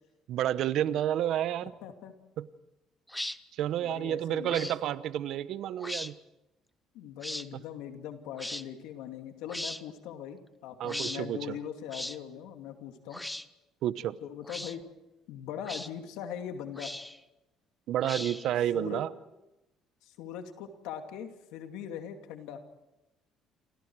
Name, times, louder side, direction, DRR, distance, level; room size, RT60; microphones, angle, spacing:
voice 1, 0.3-1.7 2.4-2.5 3.5-6.2 10.8-11.6 13.8-14.2 17.9-19.1, right 11 dB, 70° right, 15 dB, 0.9 m, -30 dB
voice 2, 1.8-2.1 3.8-4.7 6.9-13.2 14.2-14.8 15.3-16.9 18.7-19.0 20.0-22.6, left 9 dB, 90° left, 6 dB, 2.5 m, -41 dB
sound 1, 3.1-3.4 4.5-4.8 5.8-6.1 7.2-7.5 8.4-8.6 9.5-9.8 10.9-11.2 11.9-12.2 13.1-13.5 14.4-14.8 15.6-15.9 16.8-17.2 18.0-18.5, left 1 dB, 5° left, 0.8 m, -38 dB
29.0 x 26.0 x 4.7 m, 0.96 s
cardioid pair, 110°, 0 cm